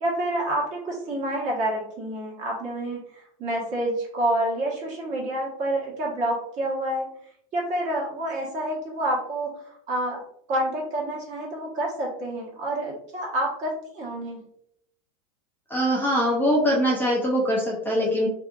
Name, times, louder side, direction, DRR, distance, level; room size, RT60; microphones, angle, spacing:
voice 1, 0.0-7.1 7.5-10.2 10.5-14.4, right 1 dB, 40° right, -3 dB, 1.2 m, -28 dB
voice 2, 15.7-18.3, equal, 10° left, -4 dB, 0.5 m, -22 dB
2.7 x 2.5 x 2.4 m, 0.72 s
supercardioid pair, 120°, 19 cm